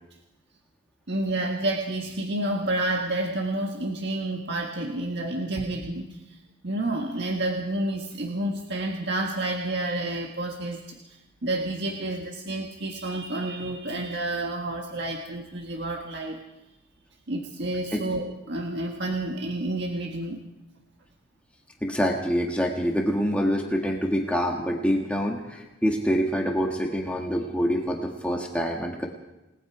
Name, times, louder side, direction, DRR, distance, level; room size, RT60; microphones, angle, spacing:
voice 1, 1.1-6.4 6.6-16.4 17.3-20.4, right 1 dB, 55° right, 1 dB, 1.7 m, -30 dB
voice 2, 21.8-29.1, equal, 5° left, 0 dB, 1.7 m, -26 dB
28.5 x 19.0 x 4.9 m, 0.99 s
head